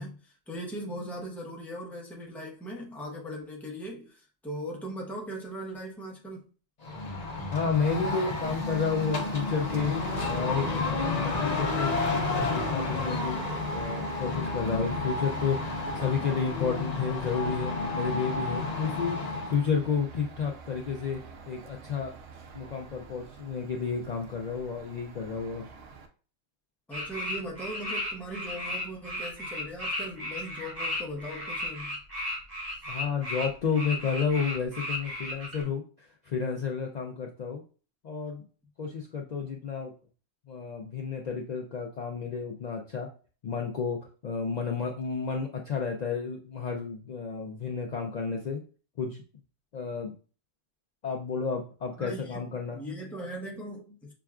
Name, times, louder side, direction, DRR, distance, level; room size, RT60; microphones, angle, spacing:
voice 1, 0.0-6.4 26.9-32.0 52.0-54.1, equal, ahead, 0.5 m, -39 dB
sound 1, 6.8-19.6, left 3 dB, 40° left, 0.8 m, -31 dB
voice 2, 7.5-9.9 10.2-13.4 13.7-21.2 21.5-22.1 22.5-25.7 32.9-37.6 38.0-38.4 38.8-39.9 40.5-43.1 43.4-48.6 49.0-49.2 49.7-50.1 51.0-52.8, left 6 dB, 75° left, 0.3 m, -31 dB
sound 2, 8.4-26.1, right 5 dB, 85° right, 1.0 m, -44 dB
sound 3, 26.9-35.6, left 1 dB, 35° right, 1.2 m, -35 dB
5.9 x 2.3 x 2.3 m
omnidirectional pair, 1.3 m